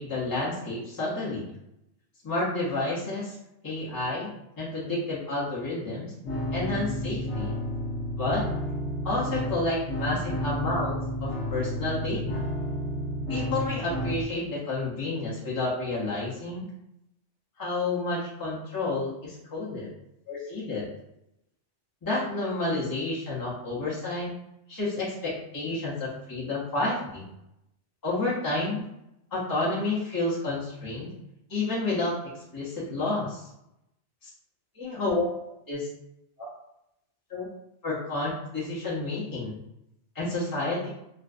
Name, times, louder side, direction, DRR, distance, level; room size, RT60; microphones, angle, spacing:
voice 1, 0.0-1.5 2.2-3.4 3.6-6.1 6.5-7.5 8.2-8.4 9.0-10.9 11.2-12.2 13.3-16.7 17.6-19.9 20.3-20.9 22.0-24.3 24.7-27.2 28.0-28.9 29.3-31.1 31.5-33.5 34.2-34.3 34.8-35.3 35.7-35.9 37.3-37.5 37.8-39.6 40.1-40.9, left 2 dB, 30° left, -7 dB, 0.4 m, -30 dB
sound 1, 6.2-14.2, equal, 75° left, 1.0 m, -31 dB
2.5 x 2.2 x 2.4 m, 0.84 s
omnidirectional pair, 1.2 m